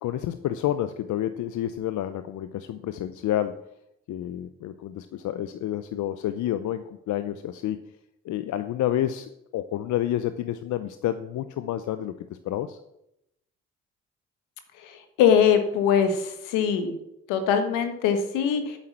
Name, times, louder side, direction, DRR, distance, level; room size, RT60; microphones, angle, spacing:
voice 1, 0.0-3.6 4.1-7.8 8.2-12.1 12.4-12.8, left 12 dB, 65° left, 11 dB, 0.7 m, -29 dB
voice 2, 15.2-16.9 17.3-18.8, left 7 dB, 85° left, 7 dB, 1.5 m, -22 dB
8.7 x 7.5 x 7.4 m, 0.83 s
supercardioid pair, 55°, 31 cm